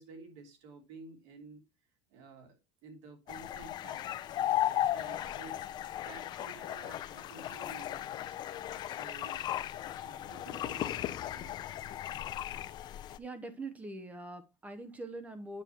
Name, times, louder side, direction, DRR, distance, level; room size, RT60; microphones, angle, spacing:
voice 1, 0.0-1.6 2.1-9.5 10.0-11.6, right 4 dB, 80° right, 3.0 m, -53 dB
sound 1, 3.3-13.2, left 12 dB, 30° left, 0.5 m, -36 dB
voice 2, 12.9-15.6, right 2 dB, 10° right, 0.7 m, -43 dB
9.2 x 6.5 x 2.9 m
cardioid pair, 170°, 15 cm